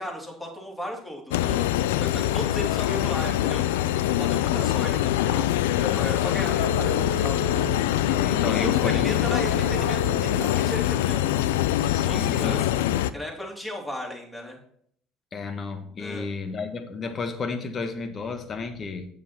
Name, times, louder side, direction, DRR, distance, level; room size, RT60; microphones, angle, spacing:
voice 1, 0.0-3.9 4.2-7.6 8.6-8.7 8.9-11.2 12.0-12.7 13.1-14.6 16.0-16.3, left 1 dB, 10° left, -1 dB, 3.4 m, -35 dB
sound 1, 1.3-13.1, left 13 dB, 80° left, 0.4 m, -24 dB
Wind instrument woodwind instrument, 6.5-10.6, right 1 dB, 60° left, 2.0 m, -35 dB
voice 2, 8.1-9.2 11.9-12.7 15.3-19.1, left 4 dB, 40° left, 8 dB, 1.5 m, -32 dB
7.8 x 7.1 x 4.3 m, 0.63 s
hypercardioid pair, 70°, 0 cm